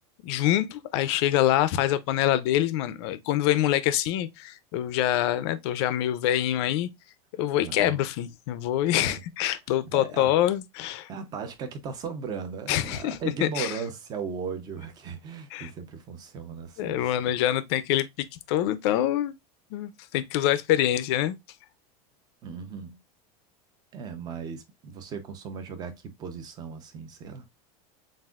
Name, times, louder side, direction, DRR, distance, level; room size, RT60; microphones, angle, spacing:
voice 1, 0.2-6.9 7.4-11.1 12.7-13.7 15.5-15.7 16.8-19.3 19.7-21.4, left 12 dB, 45° left, 0.5 m, -25 dB
voice 2, 7.5-8.0 8.9-9.2 9.9-10.3 11.1-17.3 22.4-23.0 23.9-27.5, right 5 dB, 20° right, 0.7 m, -37 dB
7.4 x 2.6 x 2.4 m
supercardioid pair, 175°, 19 cm